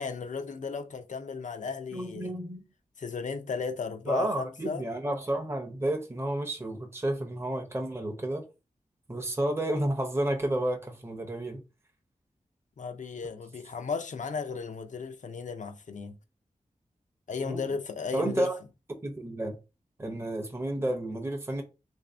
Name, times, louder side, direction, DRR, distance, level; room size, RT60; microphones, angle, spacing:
voice 1, 0.0-2.3 3.0-4.8 12.8-16.2 17.3-18.5, left 5 dB, 65° left, 0.5 m, -35 dB
voice 2, 1.9-2.6 4.1-8.4 9.1-11.6 17.4-17.7 18.1-18.6 19.0-19.6 20.0-21.6, right 1 dB, 20° right, 0.7 m, -31 dB
3.3 x 2.6 x 3.3 m
wide cardioid pair, 90°, 13 cm